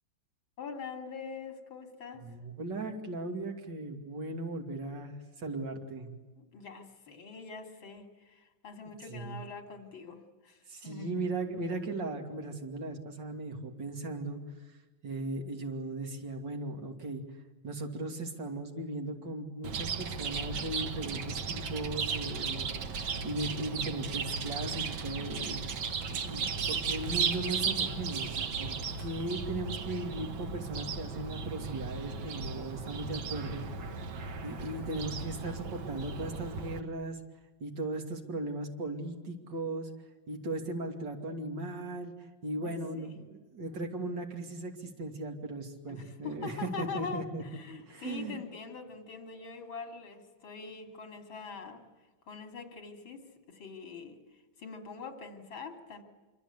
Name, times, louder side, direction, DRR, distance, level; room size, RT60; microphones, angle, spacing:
voice 1, 0.6-2.2 6.4-11.3 42.6-43.2 45.9-51.9 52.3-54.2 54.6-56.0, left 5 dB, 80° left, 6 dB, 3.5 m, -43 dB
voice 2, 2.1-6.1 9.1-9.4 10.7-14.4 15.0-17.2 17.6-22.9 23.2-25.6 26.1-33.7 34.0-37.2 37.6-39.9 40.3-47.4 47.9-48.4, right 2 dB, 65° right, 3 dB, 3.3 m, -37 dB
Chirp tweet, 19.6-36.8, right 5 dB, 85° right, 2.1 m, -35 dB
26.5 x 24.5 x 8.4 m, 1.2 s
omnidirectional pair, 2.1 m